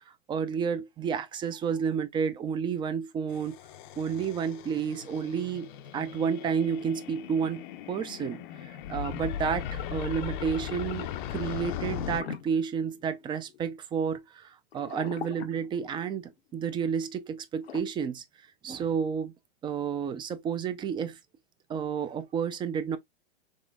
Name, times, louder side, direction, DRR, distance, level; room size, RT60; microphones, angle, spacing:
voice 1, 0.3-3.6 4.0-18.2 18.6-19.3 19.6-21.2 21.7-23.0, right 7 dB, 15° right, 0.4 m, -31 dB
sound 1, 3.3-12.2, left 10 dB, 50° left, 0.6 m, -38 dB
sound 2, 12.2-13.6 14.7-16.3 17.6-17.8, left 8 dB, 85° left, 0.7 m, -41 dB
3.6 x 3.1 x 2.3 m
hypercardioid pair, 120°, 30 cm